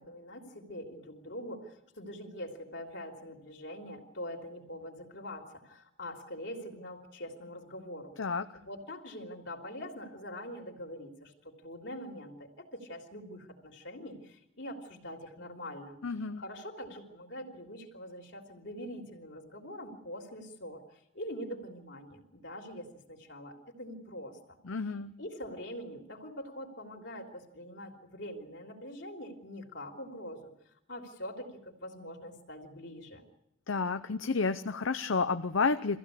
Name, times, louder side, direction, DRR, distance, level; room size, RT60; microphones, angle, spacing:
voice 1, 0.0-8.1 8.5-16.0 16.4-24.6 25.2-33.2, equal, 60° left, 2 dB, 3.3 m, -44 dB
voice 2, 16.0-16.4 24.7-25.1 33.7-36.0, left 4 dB, 85° left, 10 dB, 0.7 m, -30 dB
24.5 x 15.5 x 8.4 m, 0.82 s
head